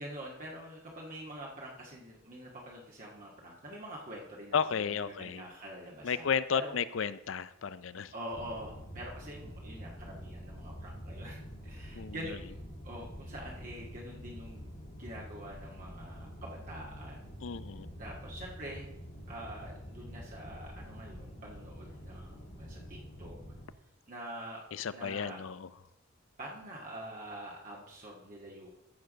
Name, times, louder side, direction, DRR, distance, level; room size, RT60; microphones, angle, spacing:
voice 1, 0.0-6.3 6.6-6.7 8.1-12.5 12.8-14.6 15.0-17.2 18.0-18.9 19.3-23.4 24.1-25.4 26.4-28.7, right 1 dB, 40° right, -3 dB, 1.8 m, -45 dB
voice 2, 4.5-5.4 6.0-8.1 11.9-12.4 17.4-17.9 24.7-25.7, left 6 dB, 70° left, 16 dB, 0.5 m, -33 dB
sound 1, 8.3-23.7, equal, 45° left, 2.3 m, -46 dB
13.5 x 4.7 x 6.2 m, 0.86 s
head